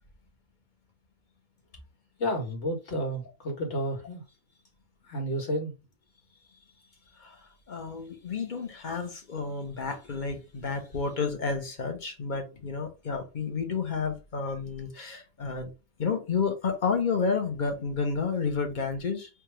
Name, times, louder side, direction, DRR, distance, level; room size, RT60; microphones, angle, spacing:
voice 1, 2.2-4.2 5.1-5.7, equal, 60° left, 1.7 m, -31 dB
voice 2, 7.7-15.7 16.0-19.3, left 5 dB, 40° left, 0.9 m, -31 dB
3.4 x 2.4 x 4.3 m
omnidirectional pair, 1.3 m